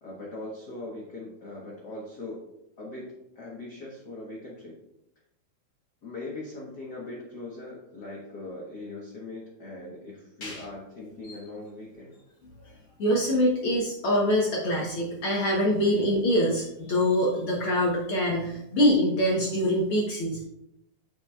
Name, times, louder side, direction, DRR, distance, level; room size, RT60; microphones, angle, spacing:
voice 1, 0.0-2.4 2.8-4.8 6.0-12.2, left 2 dB, 85° left, -4 dB, 0.9 m, -40 dB
voice 2, 13.0-20.4, equal, 70° left, -3 dB, 1.3 m, -24 dB
11.0 x 5.2 x 2.3 m, 0.82 s
omnidirectional pair, 3.9 m